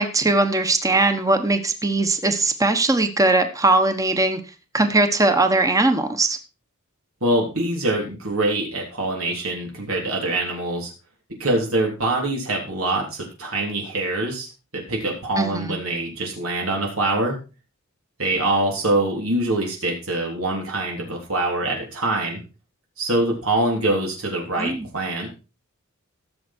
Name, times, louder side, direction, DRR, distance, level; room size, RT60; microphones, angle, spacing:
voice 1, 0.0-4.4 4.7-6.4 15.4-15.8 24.6-24.8, right 2 dB, 15° right, 7 dB, 1.2 m, -20 dB
voice 2, 7.2-10.9 11.4-14.5 14.7-17.4 18.2-22.4 23.0-25.3, right 2 dB, 85° right, 0 dB, 3.6 m, -24 dB
15.5 x 7.5 x 4.5 m, 0.32 s
head